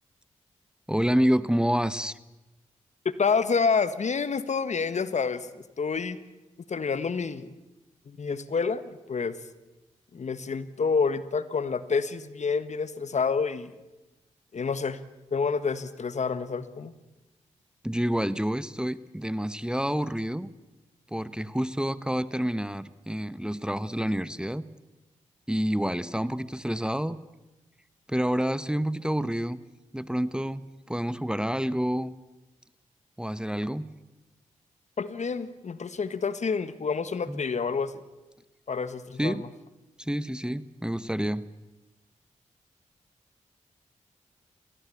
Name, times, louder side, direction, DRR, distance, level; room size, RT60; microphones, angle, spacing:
voice 1, 0.9-2.2 17.8-20.5 21.1-24.6 25.5-27.2 28.1-29.6 29.9-32.1 33.2-33.9 37.3-37.4 39.2-39.4 40.0-41.5, equal, 5° right, 16 dB, 1.0 m, -28 dB
voice 2, 3.2-5.5 5.8-6.2 6.7-7.5 8.1-9.3 10.1-13.7 14.5-15.0 15.3-16.9 35.0-37.9 38.7-39.5, left 5 dB, 60° left, 14 dB, 1.4 m, -28 dB
23.0 x 18.0 x 8.5 m, 1.0 s
supercardioid pair, 45°, 13 cm